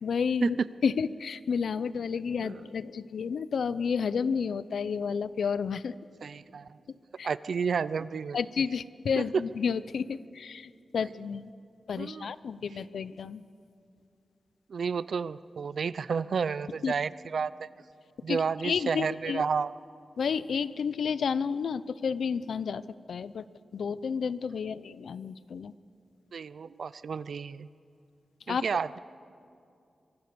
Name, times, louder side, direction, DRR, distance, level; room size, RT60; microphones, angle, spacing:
voice 1, 0.0-0.6 0.8-5.9 6.9-7.3 8.3-11.5 11.9-13.4 16.8-16.9 18.3-19.4 20.2-22.8 23.1-23.5 23.7-25.7 28.5-28.6, left 6 dB, 75° left, 16 dB, 0.6 m, -31 dB
voice 2, 6.2-6.8 7.2-8.4 9.2-9.3 12.0-12.3 14.7-17.7 18.2-19.7 26.3-27.7 28.5-29.0, right 5 dB, 65° right, 17 dB, 0.5 m, -31 dB
25.0 x 23.0 x 6.9 m, 2.5 s
wide cardioid pair, 145°, 0 cm